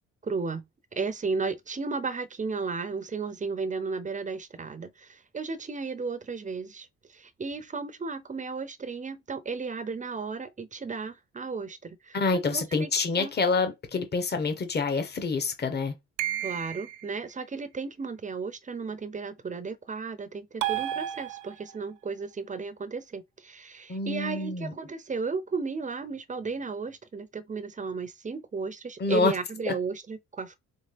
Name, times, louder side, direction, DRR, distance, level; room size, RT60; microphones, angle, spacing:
voice 1, 0.2-0.6 0.9-12.2 12.5-12.9 13.2-13.3 16.4-30.6, right 4 dB, 25° right, 0.6 m, -34 dB
voice 2, 12.1-15.9 23.9-24.7 29.0-29.3, left 4 dB, 35° left, 1.2 m, -27 dB
sound 1, 16.2-17.1 20.6-21.8, right 13 dB, 90° right, 0.6 m, -32 dB
4.2 x 3.5 x 3.5 m
cardioid pair, 90°, 30 cm